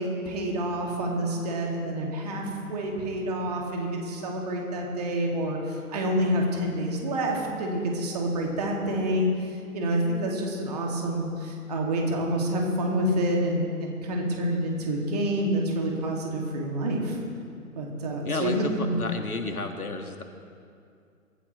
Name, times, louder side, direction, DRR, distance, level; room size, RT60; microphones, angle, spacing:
voice 1, 0.0-17.2 17.8-18.9, right 1 dB, 25° right, 0 dB, 2.3 m, -28 dB
voice 2, 18.2-20.2, left 3 dB, 75° left, 5 dB, 1.8 m, -32 dB
23.0 x 15.5 x 3.2 m, 2.4 s
figure-of-eight pair, 145°, 45 cm